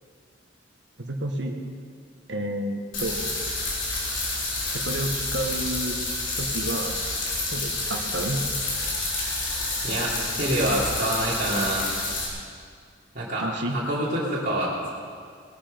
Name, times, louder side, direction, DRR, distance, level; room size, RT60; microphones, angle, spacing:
voice 1, 1.0-1.5 2.3-3.4 4.7-6.0 6.4-7.0 7.5-8.4 13.4-13.8, right 1 dB, 60° right, 3 dB, 1.6 m, -30 dB
sound 1, 2.9-12.3, left 2 dB, 75° left, 4.0 m, -29 dB
voice 2, 9.8-11.9 13.1-13.4 13.7-14.9, right 1 dB, 45° right, -8 dB, 3.0 m, -26 dB
19.0 x 12.5 x 5.3 m, 2.1 s
head